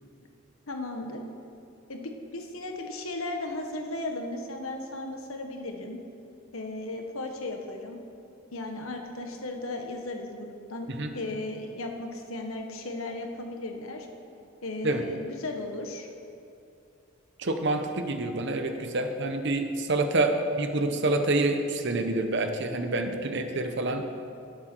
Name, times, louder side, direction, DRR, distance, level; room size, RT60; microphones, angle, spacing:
voice 1, 0.7-1.2 1.9-6.0 6.5-8.0 8.5-14.1 14.6-16.1, left 2 dB, 75° left, 3 dB, 1.4 m, -36 dB
voice 2, 17.4-24.0, right 2 dB, 55° right, 6 dB, 1.0 m, -27 dB
17.5 x 8.0 x 4.6 m, 2.6 s
head